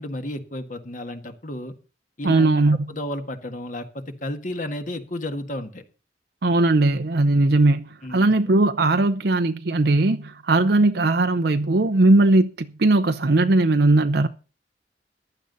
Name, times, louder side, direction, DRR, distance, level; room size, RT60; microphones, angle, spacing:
voice 1, 0.0-1.7 2.2-2.5 2.9-5.8 8.0-8.3, left 1 dB, 50° left, 1.7 m, -32 dB
voice 2, 2.2-2.9 6.4-14.3, right 2 dB, 65° right, 0.7 m, -19 dB
15.0 x 11.0 x 4.0 m
head